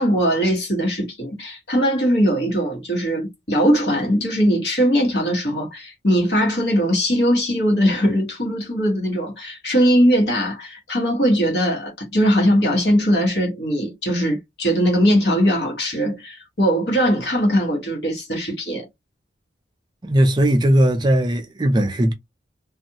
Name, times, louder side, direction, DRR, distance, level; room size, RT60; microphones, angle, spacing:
voice 1, 0.0-18.9, equal, 65° left, 1.4 m, -20 dB
voice 2, 20.0-22.1, right 1 dB, 25° right, 0.4 m, -18 dB
2.6 x 2.4 x 2.8 m
head